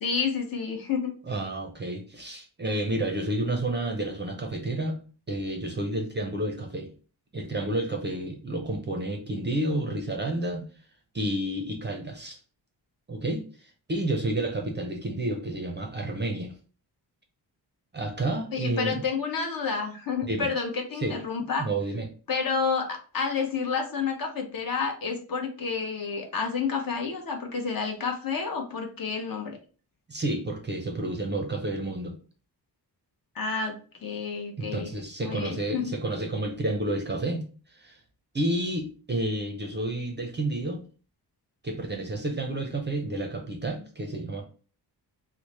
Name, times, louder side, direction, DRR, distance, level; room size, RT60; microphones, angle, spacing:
voice 1, 0.0-1.1 18.5-21.7 22.3-29.6 33.3-34.9 35.2-35.9, left 5 dB, 55° left, 3 dB, 0.8 m, -30 dB
voice 2, 1.2-5.0 5.3-6.9 7.3-10.7 11.1-12.4 13.1-16.5 17.9-19.0 20.2-20.5 21.0-21.2 21.6-22.1 30.1-32.1 34.6-38.0 38.3-40.8 41.6-44.4, right 1 dB, 25° right, 3 dB, 0.4 m, -30 dB
3.1 x 2.1 x 3.9 m, 0.38 s
wide cardioid pair, 165°, 41 cm